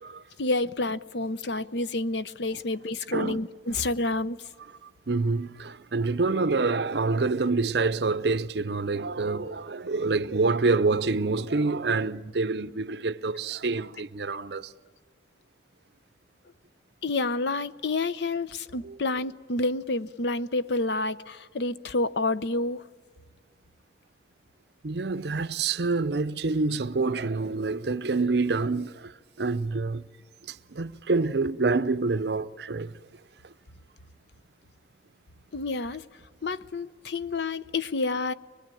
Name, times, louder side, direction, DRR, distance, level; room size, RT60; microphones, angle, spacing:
voice 1, 0.4-4.4 17.0-22.8 35.5-36.0 36.4-38.3, left 2 dB, 75° left, 0.7 m, -29 dB
voice 2, 5.1-14.7 18.8-19.0 24.8-30.1 30.5-32.9 33.4-33.5, right 3 dB, 65° right, 0.7 m, -27 dB
24.0 x 22.0 x 9.1 m
head